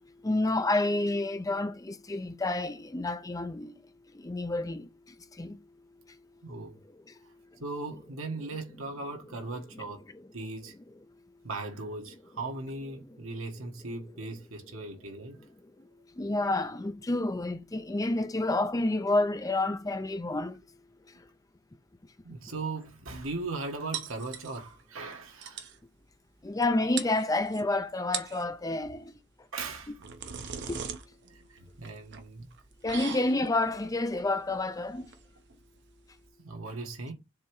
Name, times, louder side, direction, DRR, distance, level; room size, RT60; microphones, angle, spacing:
voice 1, 0.2-3.7 4.1-4.9 5.4-5.6 9.7-9.8 10.1-10.3 13.1-13.2 14.1-14.3 16.2-20.6 26.4-29.1 30.7-30.8 32.8-35.1, left 2 dB, 15° left, 0.5 m, -29 dB
voice 2, 6.4-6.8 7.6-10.1 10.3-10.7 11.4-15.4 22.2-25.6 29.5-30.0 31.3-32.5 36.4-37.1, right 3 dB, 75° right, 1.5 m, -38 dB
sound 1, 23.9-24.8 25.1-25.2 25.4-25.8 26.6-26.7 27.0-27.6 28.0-28.5 29.6-36.3, right 7 dB, 55° right, 0.9 m, -40 dB
7.2 x 3.0 x 4.7 m
head